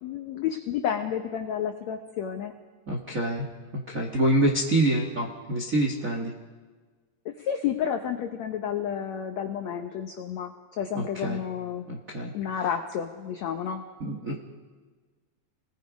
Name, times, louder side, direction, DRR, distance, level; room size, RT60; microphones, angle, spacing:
voice 1, 0.0-2.5 7.2-11.8 12.3-13.8, left 8 dB, 85° left, 5 dB, 1.5 m, -31 dB
voice 2, 2.9-3.5 3.7-6.3 10.9-11.4 11.9-12.3 14.0-14.4, right 1 dB, 80° right, -1 dB, 0.7 m, -26 dB
28.0 x 19.5 x 5.2 m, 1.4 s
omnidirectional pair, 4.5 m